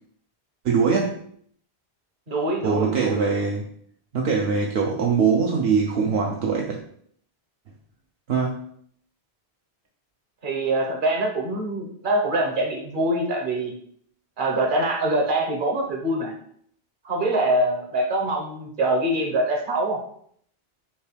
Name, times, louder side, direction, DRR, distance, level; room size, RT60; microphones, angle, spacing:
voice 1, 0.6-1.1 2.6-3.6 4.1-6.8 8.3-8.6, right 5 dB, 75° right, 0 dB, 0.8 m, -22 dB
voice 2, 2.3-3.2 10.4-13.7 14.4-16.3 17.0-20.0, right 1 dB, 55° right, 0 dB, 1.0 m, -24 dB
5.6 x 2.2 x 3.3 m, 0.63 s
omnidirectional pair, 1.1 m